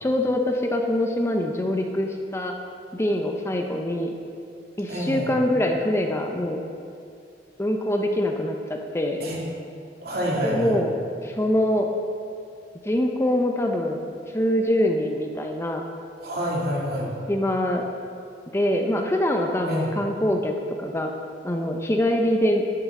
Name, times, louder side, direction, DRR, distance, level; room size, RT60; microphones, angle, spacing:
voice 1, 0.0-2.5 2.9-4.2 4.8-6.6 7.6-9.2 10.4-10.9 11.2-11.9 12.8-14.0 14.3-15.8 17.3-17.8 18.5-20.5 20.8-21.1 21.4-22.6, left 1 dB, 15° left, 3 dB, 0.6 m, -24 dB
voice 2, 4.9-5.3 9.2-9.4 10.0-10.8 16.2-17.1 19.7-19.9, equal, 55° right, -4 dB, 2.5 m, -27 dB
11.5 x 9.8 x 3.7 m, 2.4 s
head